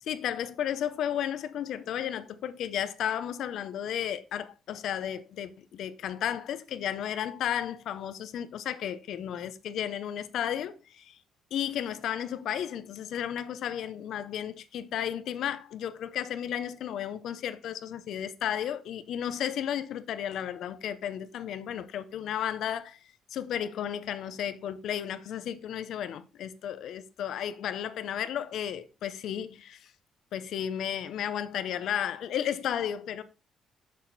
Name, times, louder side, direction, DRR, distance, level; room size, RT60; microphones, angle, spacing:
voice 1, 0.0-11.2 11.5-23.0 23.3-29.9 30.3-33.2, left 10 dB, 65° left, 0.6 m, -33 dB
6.3 x 6.3 x 4.0 m
cardioid pair, 145°, 0 cm